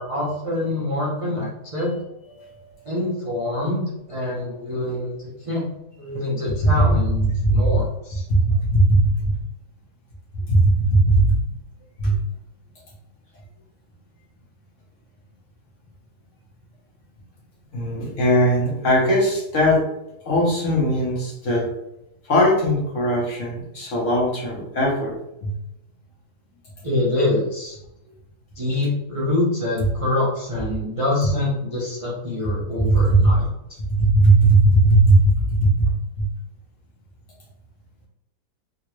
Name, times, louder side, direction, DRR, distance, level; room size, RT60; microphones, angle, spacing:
voice 1, 0.0-2.0 2.8-5.1 5.4-5.6 6.0-8.2 26.8-27.8 28.6-33.5, left 2 dB, 60° right, -7 dB, 0.3 m, -25 dB
voice 2, 2.3-2.7 7.4-7.8 8.3-9.3 10.5-11.4 12.0-12.2 17.7-19.8 20.2-21.7 22.2-25.2 25.4-25.5 32.8-33.4 33.9-36.3, right 1 dB, 55° left, -3 dB, 1.1 m, -18 dB
3.8 x 2.3 x 3.0 m, 0.86 s
omnidirectional pair, 1.9 m